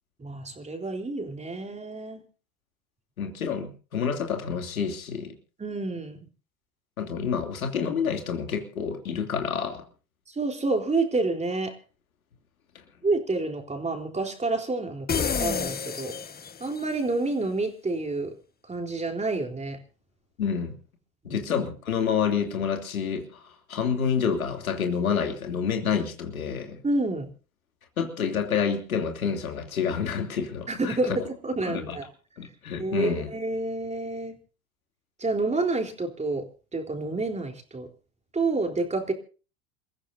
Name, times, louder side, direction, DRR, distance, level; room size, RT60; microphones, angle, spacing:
voice 1, 0.2-2.2 5.6-6.3 10.3-11.8 13.0-16.2 16.6-18.3 18.6-19.8 21.2-21.4 26.8-27.3 30.7-32.1 32.8-34.3 35.2-37.9 38.3-39.1, right 3 dB, 15° right, 4 dB, 3.8 m, -29 dB
voice 2, 3.2-5.3 7.0-9.8 12.7-12.8 20.4-20.7 21.2-26.8 28.0-31.2 31.7-32.0 32.4-33.3, left 7 dB, 90° left, 4 dB, 3.0 m, -28 dB
sound 1, 15.1-16.9, left 6 dB, 20° left, 1.5 m, -29 dB
28.0 x 15.0 x 2.7 m, 0.36 s
hypercardioid pair, 85°, 41 cm